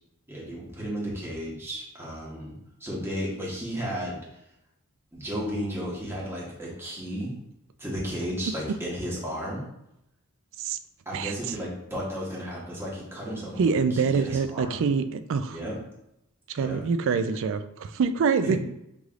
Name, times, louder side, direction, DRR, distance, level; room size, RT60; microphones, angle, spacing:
voice 1, 0.3-4.2 5.1-7.3 7.8-9.6 11.0-14.8 15.5-15.8 16.6-16.8 18.4-18.6, equal, 10° right, -5 dB, 1.2 m, -34 dB
voice 2, 13.6-15.6 16.5-18.6, right 5 dB, 60° right, 10 dB, 0.3 m, -25 dB
5.2 x 3.2 x 2.4 m, 0.82 s
head